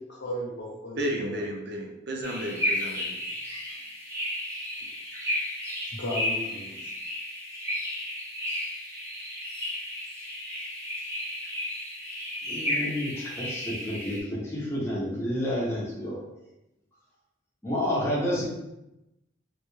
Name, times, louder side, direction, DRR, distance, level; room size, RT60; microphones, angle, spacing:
voice 1, 0.0-1.5 5.9-6.9, equal, 65° left, -4 dB, 1.0 m, -36 dB
voice 2, 1.0-3.1, right 1 dB, 60° right, 1 dB, 0.5 m, -32 dB
sound 1, 2.2-14.2, left 1 dB, 15° right, 0.7 m, -33 dB
voice 3, 12.5-16.2 17.6-18.4, equal, 15° left, -6 dB, 0.8 m, -30 dB
3.3 x 2.2 x 3.1 m, 0.91 s
head